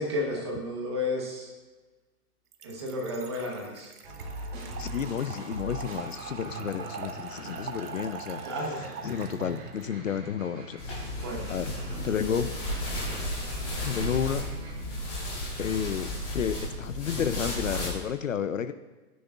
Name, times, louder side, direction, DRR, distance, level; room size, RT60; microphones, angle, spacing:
voice 1, 0.0-1.5 2.6-3.9 8.4-8.8 11.2-11.5 12.3-12.4, left 1 dB, 15° right, -1 dB, 0.9 m, -32 dB
Trickle dribble / Fill (with liquid), 2.5-9.9, right 5 dB, 70° right, 1.2 m, -43 dB
sound 1, 4.0-14.7, right 2 dB, 40° right, 3.8 m, -42 dB
voice 2, 4.8-8.4 8.8-10.8 11.5-11.7 12.0-12.5 13.8-14.5 15.6-18.7, left 8 dB, 55° left, 12 dB, 0.5 m, -31 dB
sound 2, 10.8-17.9, left 1 dB, 20° left, 3.5 m, -34 dB
18.5 x 9.4 x 2.3 m, 1.2 s
hypercardioid pair, 175°, 47 cm